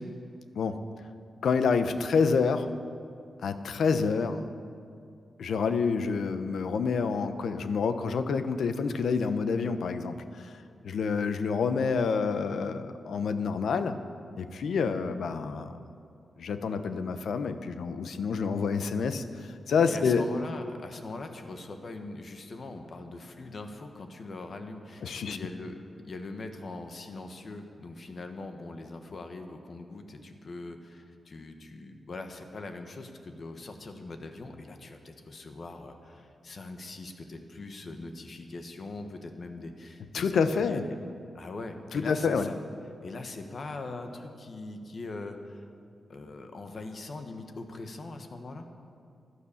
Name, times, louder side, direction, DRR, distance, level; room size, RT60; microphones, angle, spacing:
voice 1, 1.4-2.7 3.4-4.4 5.4-10.6 10.8-13.9 14.4-15.8 16.4-20.2 25.0-25.4 40.1-40.8 41.9-42.5, left 5 dB, 85° left, 10 dB, 0.8 m, -28 dB
voice 2, 19.9-41.0 41.3-42.6 43.0-45.7 46.1-48.7, left 2 dB, 45° left, 6 dB, 1.4 m, -42 dB
15.5 x 11.5 x 7.1 m, 2.4 s
wide cardioid pair, 130°, 0 cm